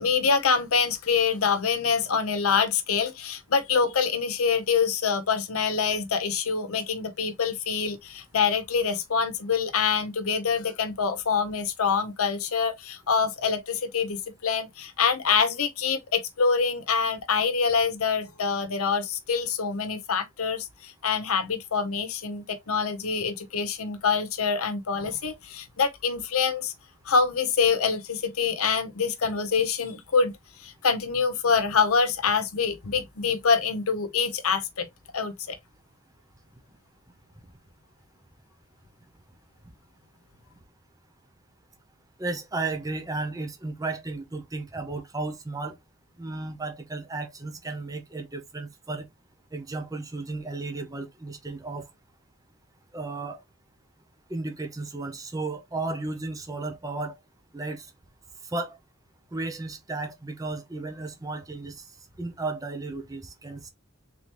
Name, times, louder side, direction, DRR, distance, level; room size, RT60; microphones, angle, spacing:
voice 1, 0.0-26.7 27.1-30.3 30.6-34.9 35.1-35.6, left 5 dB, 85° left, 0.8 m, -25 dB
voice 2, 42.2-45.8 46.2-49.1 49.5-51.9 52.9-53.4 54.3-57.1 57.5-57.9 58.5-58.8 59.3-61.8 62.2-63.7, right 3 dB, 15° right, 0.6 m, -34 dB
3.8 x 3.3 x 2.9 m
head